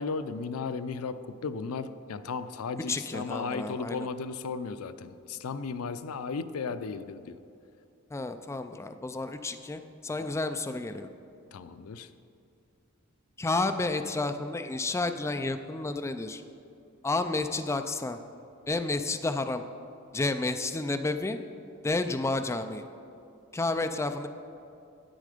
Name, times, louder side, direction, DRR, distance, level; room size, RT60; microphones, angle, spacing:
voice 1, 0.0-7.4 11.5-12.1, left 4 dB, 85° left, 12 dB, 0.5 m, -35 dB
voice 2, 2.9-4.1 8.1-11.1 13.4-16.4 17.0-18.2 18.7-19.6 20.1-21.4 21.8-22.8 23.5-24.3, left 2 dB, 15° left, 7 dB, 0.3 m, -31 dB
10.0 x 8.4 x 5.0 m, 2.6 s
head